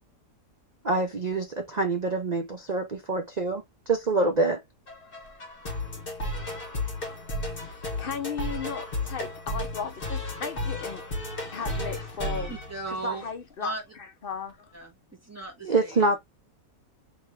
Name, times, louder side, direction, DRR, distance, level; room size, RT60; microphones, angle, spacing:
voice 1, 0.8-4.6 15.6-16.2, right 3 dB, 55° right, 0.4 m, -26 dB
sound 1, 4.9-13.4, left 1 dB, 35° left, 1.5 m, -34 dB
voice 2, 7.5-11.2 11.5-12.6 12.9-13.7 14.2-14.7, left 6 dB, 55° left, 0.7 m, -36 dB
voice 3, 12.5-13.2 13.6-13.8 14.7-16.1, right 2 dB, 10° right, 1.6 m, -36 dB
3.6 x 3.4 x 3.2 m
omnidirectional pair, 1.7 m